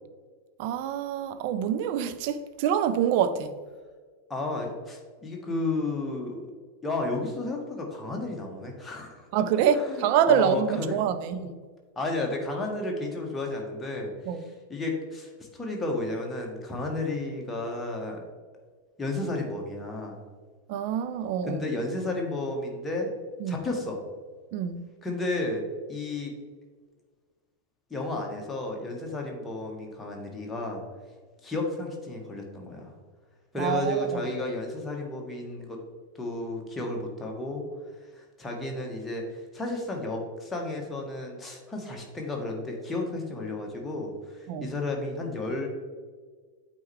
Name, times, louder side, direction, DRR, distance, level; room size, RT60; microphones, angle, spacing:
voice 1, 0.6-3.6 9.3-11.5 14.3-14.4 20.7-21.6 23.4-23.6 24.5-24.8 33.6-34.3 44.5-44.8, right 8 dB, 45° right, 11 dB, 0.5 m, -26 dB
voice 2, 4.3-6.4 6.8-9.3 9.5-10.9 11.9-14.1 14.7-18.2 19.0-20.2 21.5-23.1 23.5-24.0 25.0-25.6 25.9-26.3 27.9-30.8 31.4-32.9 33.5-35.8 36.1-37.6 38.1-45.7, left 2 dB, 10° left, 0 dB, 1.4 m, -32 dB
8.6 x 4.4 x 3.3 m, 1.5 s
figure-of-eight pair, 90°, 0 cm